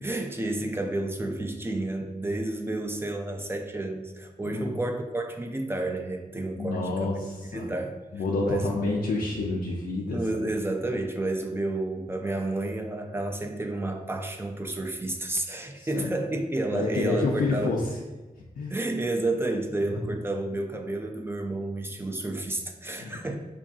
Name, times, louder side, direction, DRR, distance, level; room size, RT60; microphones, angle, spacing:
voice 1, 0.0-7.1 7.5-7.9 8.5-8.9 10.1-17.8 18.7-23.4, right 2 dB, 15° right, 3 dB, 0.4 m, -30 dB
voice 2, 4.4-4.8 6.6-7.7 8.1-10.2 15.8-16.2 16.7-18.0 18.6-18.8 19.8-20.1 23.0-23.4, left 3 dB, 80° left, -3 dB, 0.4 m, -29 dB
4.6 x 2.5 x 2.3 m, 1.2 s
wide cardioid pair, 75°, 15 cm